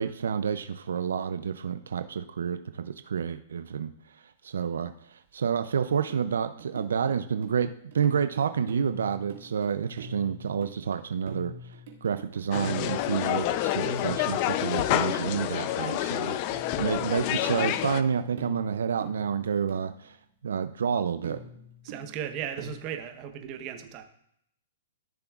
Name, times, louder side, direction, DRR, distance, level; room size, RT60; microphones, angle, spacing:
voice 1, 0.0-3.9 4.4-16.4 16.8-20.2 20.4-21.4, right 7 dB, 85° right, 10 dB, 0.4 m, -29 dB
sound 1, 6.1-7.1 7.4-20.0 21.2-22.7, right 2 dB, 65° right, 1.7 m, -44 dB
sound 2, 12.5-18.0, left 13 dB, 40° left, 0.4 m, -28 dB
voice 2, 21.8-24.0, right 9 dB, 35° right, 7 dB, 0.9 m, -36 dB
13.5 x 6.9 x 2.4 m, 0.73 s
hypercardioid pair, 145°, 0 cm